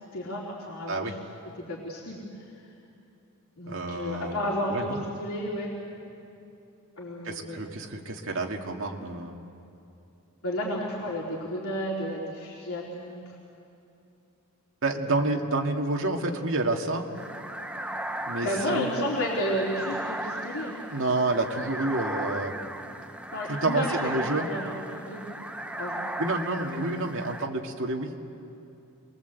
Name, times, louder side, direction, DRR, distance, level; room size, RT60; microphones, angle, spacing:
voice 1, 0.1-1.2 1.7-2.5 3.6-5.7 7.0-7.6 10.4-13.4 18.4-20.8 23.3-25.2 25.8-26.1, equal, 70° left, -4 dB, 3.5 m, -32 dB
voice 2, 3.7-4.4 4.7-5.0 7.2-9.3 14.8-17.1 18.2-18.9 20.9-22.6 23.5-24.5 26.2-28.1, right 2 dB, 60° right, 2 dB, 2.1 m, -29 dB
sound 1, 17.1-27.5, right 1 dB, 5° right, 0.7 m, -36 dB
28.5 x 21.5 x 8.2 m, 2.7 s
head